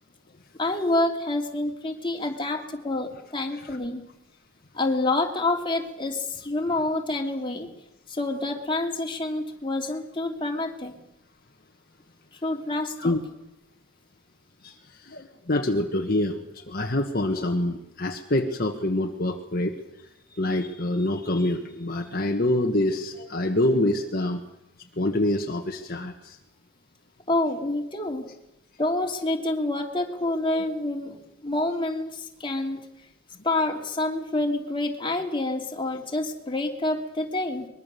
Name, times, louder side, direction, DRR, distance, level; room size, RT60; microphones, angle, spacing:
voice 1, 0.6-4.0 4.7-7.7 8.1-10.9 12.4-13.1 27.3-28.3 28.8-32.8 33.4-37.7, left 2 dB, 25° left, 2 dB, 2.7 m, -27 dB
voice 2, 14.6-19.8 20.3-24.4 25.0-26.4, left 1 dB, 50° left, 3 dB, 1.5 m, -26 dB
23.5 x 22.0 x 6.9 m, 0.88 s
head